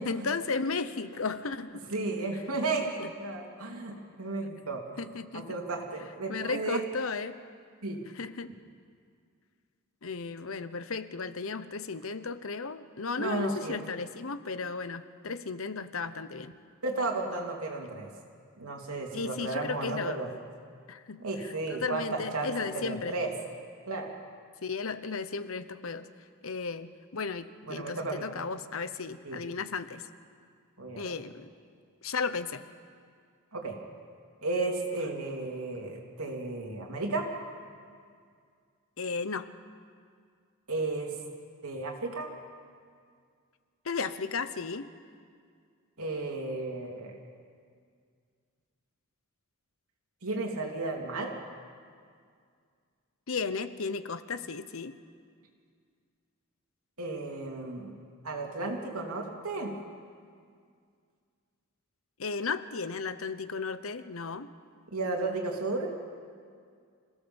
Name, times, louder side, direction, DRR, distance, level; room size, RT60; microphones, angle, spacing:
voice 1, 0.0-1.8 2.8-3.1 3.9-4.0 5.0-5.6 6.3-7.4 8.1-8.6 10.0-16.5 19.1-20.2 20.9-23.2 24.6-26.1 26.4-30.1 30.9-31.5 32.0-32.6 39.0-39.5 43.8-44.9 53.3-55.0 62.2-64.5, left 4 dB, 70° left, 12 dB, 0.9 m, -35 dB
voice 2, 1.9-4.8 5.3-6.8 7.8-8.0 13.2-13.8 16.8-18.1 18.6-20.3 21.2-23.3 23.9-24.1 27.7-28.3 29.2-29.4 30.8-31.1 33.5-33.8 34.4-37.3 40.7-41.1 41.6-42.3 46.0-47.2 50.2-51.4 57.0-57.9 58.2-59.7 64.9-65.9, right 3 dB, 85° right, 1 dB, 3.2 m, -33 dB
26.5 x 16.5 x 7.1 m, 2.2 s
head